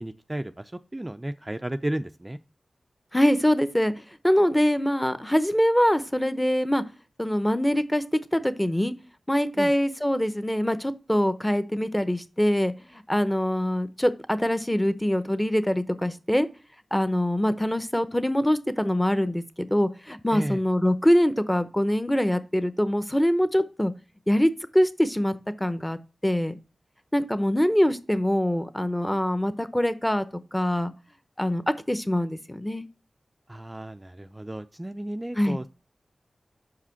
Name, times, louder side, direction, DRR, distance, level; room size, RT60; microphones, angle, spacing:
voice 1, 0.0-2.4 9.6-9.7 20.3-20.6 33.5-35.8, right 1 dB, 20° right, 9 dB, 0.4 m, -33 dB
voice 2, 3.1-3.9 4.2-6.8 7.2-8.0 8.3-8.9 9.3-16.5 16.9-23.9 24.3-26.6 27.1-30.2 30.5-30.9 31.4-31.6 31.9-32.9 35.4-35.6, equal, 10° left, 12 dB, 0.8 m, -24 dB
6.2 x 4.9 x 5.7 m, 0.33 s
wide cardioid pair, 60°, 0 cm